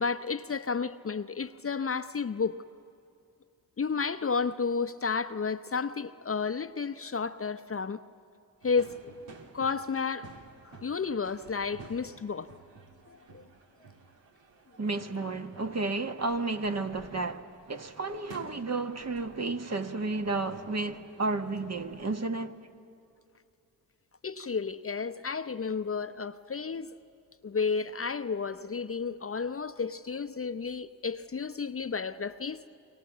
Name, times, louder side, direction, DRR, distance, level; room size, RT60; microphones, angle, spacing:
voice 1, 0.0-2.6 3.8-8.0 8.6-9.1 9.5-10.3 10.6-12.6 13.1-13.4 24.2-26.9 27.4-32.6, left 5 dB, 30° left, 0.7 m, -32 dB
sound 1, 8.6-22.2, right 3 dB, 85° right, 1.9 m, -53 dB
voice 2, 14.8-22.6, right 3 dB, 35° right, 1.4 m, -32 dB
27.0 x 22.5 x 7.3 m
supercardioid pair, 45°, 43 cm